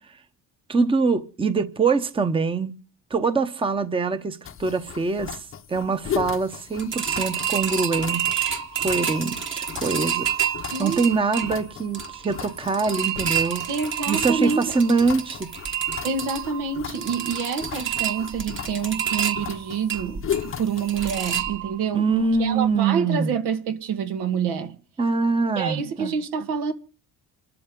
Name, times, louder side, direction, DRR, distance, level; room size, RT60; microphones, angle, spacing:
voice 1, 0.7-2.7 3.1-10.5 10.8-13.6 14.1-15.5 21.9-23.3 25.0-26.1, right 4 dB, 15° right, 0.9 m, -24 dB
sound 1, 4.4-21.3, left 9 dB, 35° left, 0.8 m, -37 dB
sound 2, 6.8-22.0 22.3-22.4 22.8-22.9, right 9 dB, 30° right, 1.3 m, -29 dB
voice 2, 10.7-11.0 13.7-14.6 16.0-22.1 22.4-24.8 25.6-26.7, right 6 dB, 85° right, 2.0 m, -27 dB
28.5 x 12.5 x 3.8 m
cardioid pair, 140°, 39 cm